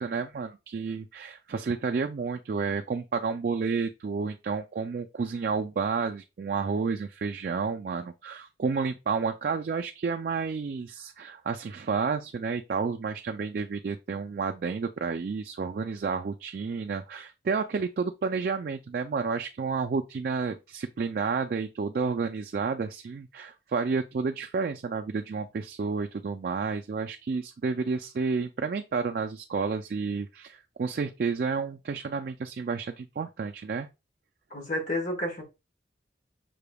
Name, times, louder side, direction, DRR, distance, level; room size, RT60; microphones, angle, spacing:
voice 1, 0.0-33.9, right 5 dB, 50° right, 0.3 m, -30 dB
voice 2, 34.5-35.4, left 1 dB, 40° left, 1.4 m, -30 dB
5.7 x 3.3 x 2.3 m
head